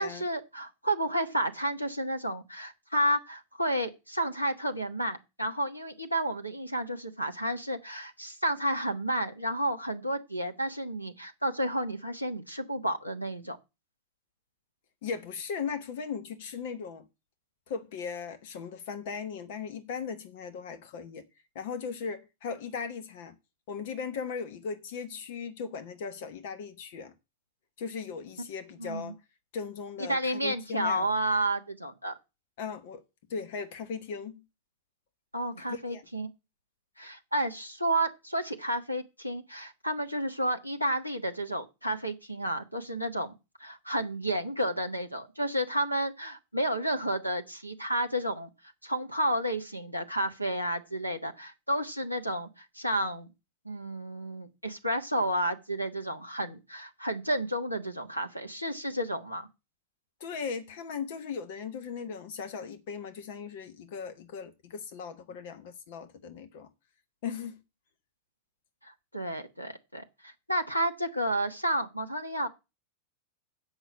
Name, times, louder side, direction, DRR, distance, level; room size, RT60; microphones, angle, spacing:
voice 1, 0.0-13.6 28.8-29.1 30.0-32.2 35.3-36.3 37.0-43.3 43.6-48.5 48.8-53.3 53.6-59.5 68.8-72.5, right 1 dB, 90° left, 1.3 m, -31 dB
voice 2, 15.0-17.1 17.7-21.2 21.5-23.4 23.7-27.1 27.8-29.2 29.5-31.1 32.6-33.0 33.3-34.4 35.7-36.0 60.2-66.7 67.2-67.6, left 6 dB, 50° left, 1.2 m, -38 dB
8.0 x 6.1 x 8.1 m
figure-of-eight pair, 90°, 0 cm